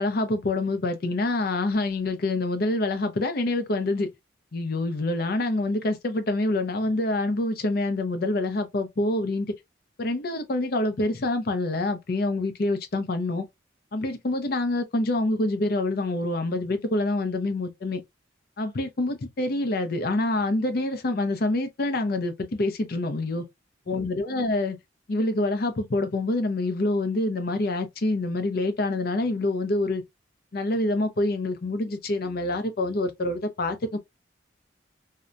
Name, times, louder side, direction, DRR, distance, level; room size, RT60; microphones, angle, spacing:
voice 1, 0.0-4.1 4.5-9.5 10.0-13.5 13.9-18.0 18.6-23.4 23.9-24.8 25.1-30.0 30.5-34.0, left 2 dB, 50° left, 0.5 m, -26 dB
2.8 x 2.1 x 2.4 m
head